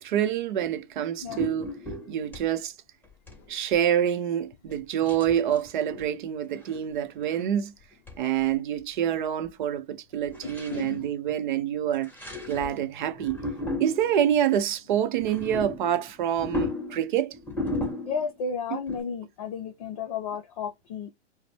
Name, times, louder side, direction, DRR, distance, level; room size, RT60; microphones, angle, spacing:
voice 1, 0.0-1.7 2.1-2.7 3.5-7.7 8.2-12.1 12.5-13.4 13.8-17.4, right 10 dB, 45° right, 0.7 m, -26 dB
sound 1, 0.6-0.8 1.2-2.5 3.0-3.4 3.7-3.8 5.0-6.1 6.6-6.9 7.2-7.5 8.1-8.2 8.5-8.6 8.8-9.2 9.5-9.6 10.3-10.9 11.9-12.8 13.1-14.2 15.1-18.4 18.9-19.0, left 2 dB, 5° left, 2.4 m, -35 dB
voice 2, 10.4-11.1 18.1-21.1, left 5 dB, 35° left, 0.6 m, -33 dB
4.9 x 2.1 x 3.3 m
hypercardioid pair, 150°, 34 cm